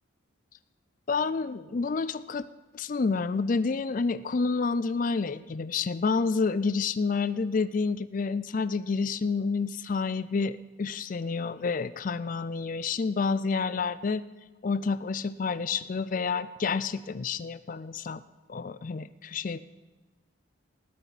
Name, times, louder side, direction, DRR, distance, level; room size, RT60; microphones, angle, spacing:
voice 1, 1.1-2.5 2.7-14.2 14.6-18.2 18.5-19.6, left 4 dB, 40° left, 14 dB, 0.4 m, -29 dB
19.5 x 13.5 x 4.1 m, 1.2 s
head